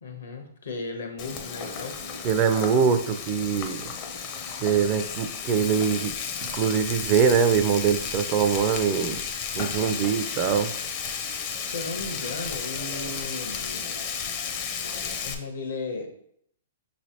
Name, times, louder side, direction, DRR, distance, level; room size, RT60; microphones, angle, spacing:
voice 1, 0.0-2.0 11.7-13.6 15.2-16.1, left 3 dB, 80° left, 4 dB, 1.1 m, -35 dB
Frying (food), 1.2-15.3, left 6 dB, 35° left, 0.5 m, -33 dB
voice 2, 2.2-3.9 4.6-6.1 6.4-9.2 9.5-10.7, right 7 dB, 35° right, 9 dB, 0.4 m, -23 dB
5.7 x 3.1 x 2.8 m, 0.68 s
hypercardioid pair, 140°, 0 cm